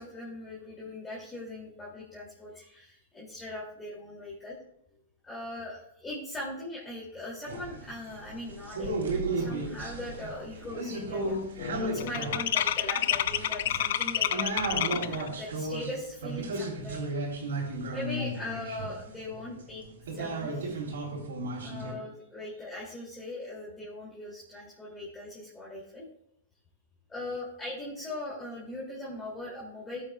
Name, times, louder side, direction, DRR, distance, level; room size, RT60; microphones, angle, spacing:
voice 1, 0.0-4.6 5.2-17.0 17.9-19.8 20.1-20.8 21.6-26.0 27.1-30.1, left 1 dB, 15° left, -6 dB, 2.6 m, -40 dB
sound 1, 7.5-21.9, right 2 dB, 85° right, 3.6 m, -35 dB
sound 2, 9.6-9.7 10.0-10.4 10.6-15.3, left 11 dB, 70° left, 0.5 m, -29 dB
14.0 x 8.5 x 2.3 m, 0.77 s
hypercardioid pair, 130°, 0 cm